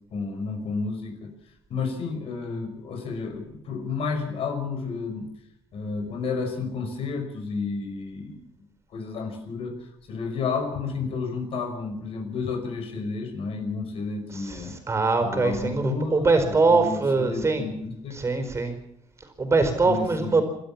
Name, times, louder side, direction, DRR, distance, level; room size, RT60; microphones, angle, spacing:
voice 1, 0.1-1.3 1.7-5.3 5.7-8.4 8.9-14.8 15.2-18.5 19.4-19.5 19.8-20.4, left 4 dB, 60° left, 6 dB, 5.5 m, -31 dB
voice 2, 14.3-17.7 18.1-18.7 19.2-20.4, right 3 dB, 25° right, 8 dB, 4.7 m, -23 dB
28.0 x 12.5 x 7.3 m, 0.76 s
cardioid pair, 130°, 11 cm